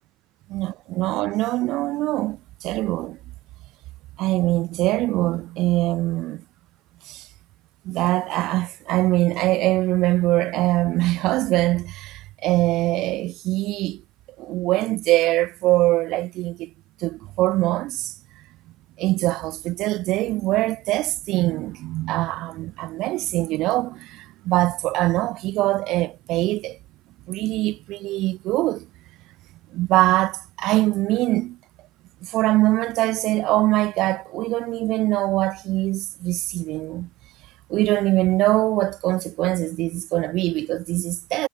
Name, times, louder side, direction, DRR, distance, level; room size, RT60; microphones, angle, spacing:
voice 1, 0.5-3.2 4.2-6.4 7.0-7.3 7.8-14.0 14.4-16.7 17.0-18.1 19.0-26.8 27.3-28.9 29.7-31.6 32.2-37.1 37.7-41.5, right 18 dB, 50° right, 2.5 m, -23 dB
supercardioid pair, 120°, 0 cm